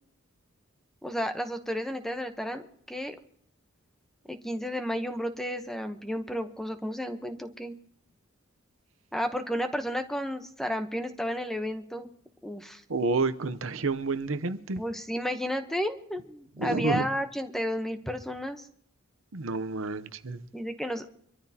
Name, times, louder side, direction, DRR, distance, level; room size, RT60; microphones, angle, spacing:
voice 1, 1.0-3.1 4.3-7.8 9.1-12.1 12.4-12.8 14.8-18.7 20.5-21.1, equal, ahead, 0.9 m, -32 dB
voice 2, 12.9-14.8 16.6-17.0 19.3-20.4, right 3 dB, 70° right, 0.8 m, -29 dB
25.0 x 13.5 x 2.9 m
head